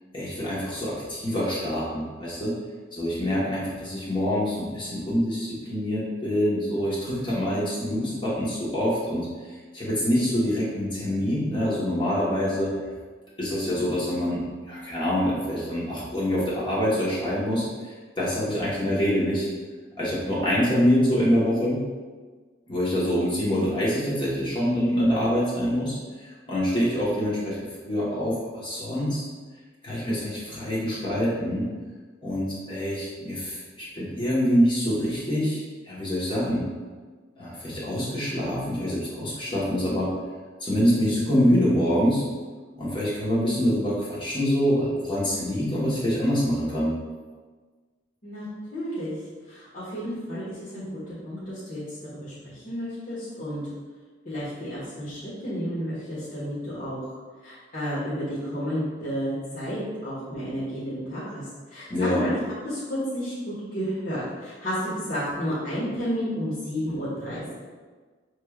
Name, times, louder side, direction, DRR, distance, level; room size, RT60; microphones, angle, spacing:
voice 1, 0.1-2.5 2.9-12.9 13.4-14.4 14.7-19.5 20.0-21.8 22.7-27.6 27.8-29.2 29.8-31.7 32.2-36.7 37.4-40.1 40.6-42.2 42.8-46.9 61.9-62.2, equal, 25° left, -7 dB, 1.3 m, -25 dB
voice 2, 48.7-49.1 49.5-51.0 51.2-51.8 52.1-53.6 54.2-57.2 57.4-61.4 61.7-62.3 62.6-67.5, equal, 45° left, -12 dB, 1.4 m, -31 dB
6.4 x 3.2 x 2.4 m, 1.4 s
head